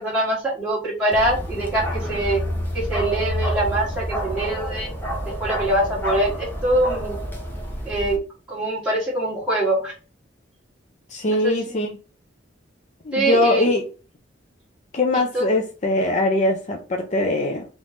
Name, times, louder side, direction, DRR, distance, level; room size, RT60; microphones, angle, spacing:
voice 1, 0.0-2.4 2.7-4.9 5.4-7.2 7.8-8.2 8.5-9.9 11.3-11.6 13.1-13.7 15.1-15.4, right 1 dB, 5° right, 1.3 m, -23 dB
Bark, 1.1-8.2, equal, 10° left, 0.8 m, -28 dB
voice 2, 11.1-11.9 13.0-13.8 14.9-17.7, left 2 dB, 40° left, 0.5 m, -21 dB
3.5 x 3.1 x 3.9 m
head